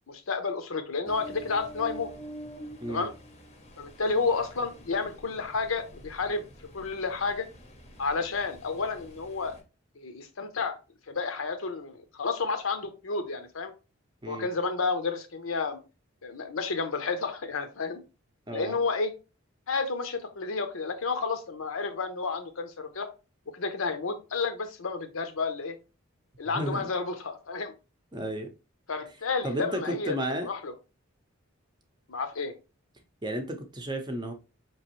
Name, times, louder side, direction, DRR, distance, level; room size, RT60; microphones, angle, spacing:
voice 1, 0.1-2.1 2.9-3.1 3.8-6.4 6.7-7.5 8.0-9.6 10.0-10.8 11.1-13.7 14.3-15.8 16.2-18.0 18.5-19.1 19.7-23.1 23.5-25.8 26.4-27.7 28.9-30.1 30.5-30.7 32.1-32.5, left 4 dB, 75° left, 0.7 m, -31 dB
Ocean, 1.0-9.6, right 1 dB, 30° left, 0.7 m, -47 dB
voice 2, 26.5-26.9 28.1-28.5 29.4-30.5 33.2-34.3, right 1 dB, 20° right, 0.6 m, -32 dB
5.0 x 3.1 x 3.0 m
head